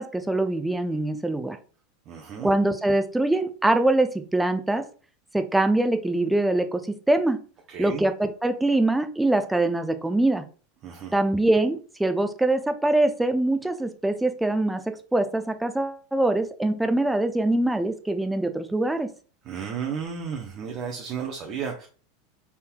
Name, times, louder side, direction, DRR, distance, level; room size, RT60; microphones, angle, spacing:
voice 1, 0.0-1.6 2.4-4.8 5.3-7.4 7.8-10.4 11.1-19.1, right 2 dB, 5° right, 8 dB, 0.5 m, -23 dB
voice 2, 2.1-2.5 7.7-8.1 10.8-11.1 19.4-21.9, right 7 dB, 40° right, 1 dB, 0.7 m, -33 dB
4.1 x 3.6 x 2.3 m, 0.39 s
hypercardioid pair, 85°, 0 cm